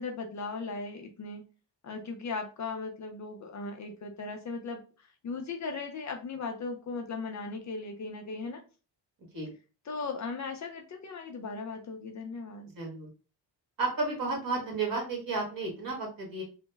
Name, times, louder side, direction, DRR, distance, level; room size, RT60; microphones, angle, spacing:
voice 1, 0.0-1.4 1.8-8.6 9.9-12.7, left 4 dB, 45° left, 4 dB, 0.5 m, -37 dB
voice 2, 12.7-13.1 13.8-16.4, right 3 dB, 50° right, 0 dB, 1.5 m, -32 dB
3.0 x 2.0 x 3.3 m, 0.34 s
wide cardioid pair, 165°, 43 cm